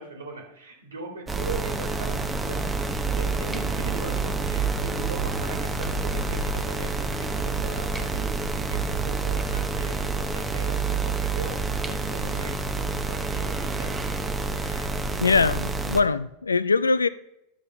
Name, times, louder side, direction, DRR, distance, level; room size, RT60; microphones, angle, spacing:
voice 1, 0.0-14.3, right 3 dB, 75° right, 1.8 m, -40 dB
sound 1, 1.3-16.0, right 3 dB, 10° right, 0.8 m, -28 dB
voice 2, 14.6-14.9 15.2-17.1, left 4 dB, 75° left, 0.4 m, -22 dB
12.5 x 6.3 x 3.4 m
figure-of-eight pair, 90°, 0 cm